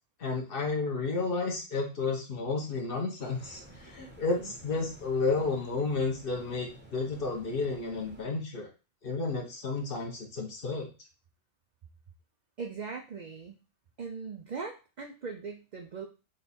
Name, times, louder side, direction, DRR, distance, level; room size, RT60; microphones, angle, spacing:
voice 1, 0.2-8.7 9.0-10.9, left 3 dB, 50° left, 1 dB, 1.0 m, -32 dB
sound 1, 3.2-8.2, right 1 dB, 10° right, 0.6 m, -52 dB
voice 2, 12.6-13.6 14.0-16.1, right 5 dB, 70° right, 3 dB, 0.4 m, -40 dB
3.9 x 2.3 x 4.1 m, 0.32 s
omnidirectional pair, 1.3 m